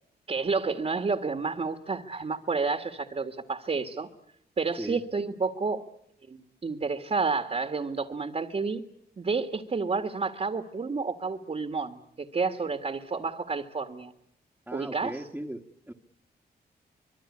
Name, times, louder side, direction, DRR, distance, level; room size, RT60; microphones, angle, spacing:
voice 1, 0.3-4.1 4.6-5.9 6.3-8.8 9.2-14.1 14.7-15.1, right 4 dB, 40° right, 7 dB, 1.9 m, -30 dB
voice 2, 14.7-15.9, right 1 dB, 5° right, 1 dB, 1.7 m, -38 dB
25.0 x 22.5 x 9.8 m, 0.74 s
cardioid pair, 85°, 17 cm